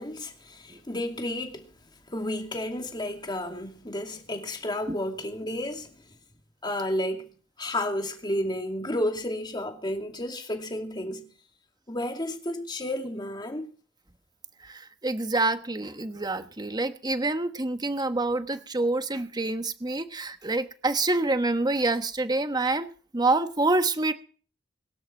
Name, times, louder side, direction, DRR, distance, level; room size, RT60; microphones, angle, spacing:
voice 1, 0.0-1.7 2.1-5.9 6.6-7.3 7.6-11.3 11.9-13.6, left 1 dB, 25° left, 2.6 m, -31 dB
voice 2, 14.6-24.1, right 2 dB, 20° right, 1.2 m, -27 dB
22.5 x 12.5 x 4.5 m
head